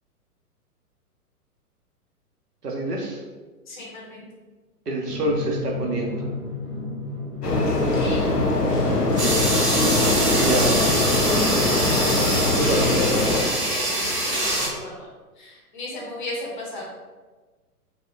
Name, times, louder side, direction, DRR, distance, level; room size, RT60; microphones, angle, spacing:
voice 1, 2.6-3.2 4.9-6.3 10.3-10.7 12.6-12.9, right 1 dB, 85° right, 0 dB, 0.7 m, -26 dB
voice 2, 3.7-4.3 8.0-8.3 12.6-12.8 13.2-15.1 15.4-16.8, left 1 dB, 30° left, -3 dB, 0.5 m, -36 dB
Drum, 5.1-10.2, left 2 dB, 15° right, 0.4 m, -33 dB
sound 1, 7.4-13.4, left 2 dB, 85° left, 0.6 m, -22 dB
sound 2, 9.2-14.7, right 1 dB, 45° right, 0.8 m, -24 dB
2.7 x 2.0 x 2.5 m, 1.3 s
figure-of-eight pair, 110°, 46 cm